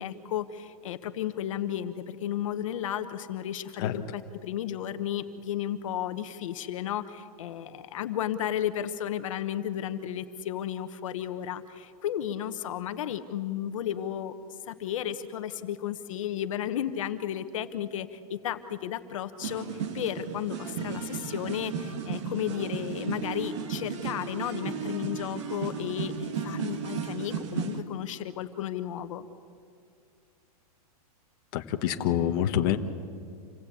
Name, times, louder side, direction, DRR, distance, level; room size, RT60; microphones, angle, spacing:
voice 1, 0.0-14.3 14.7-29.3, left 10 dB, 55° left, 10 dB, 1.2 m, -33 dB
sound 1, 19.4-27.8, right 6 dB, 50° right, 2.0 m, -34 dB
voice 2, 31.5-32.8, left 11 dB, 35° left, 4 dB, 1.1 m, -26 dB
27.5 x 18.0 x 8.6 m, 2.3 s
supercardioid pair, 170°, 19 cm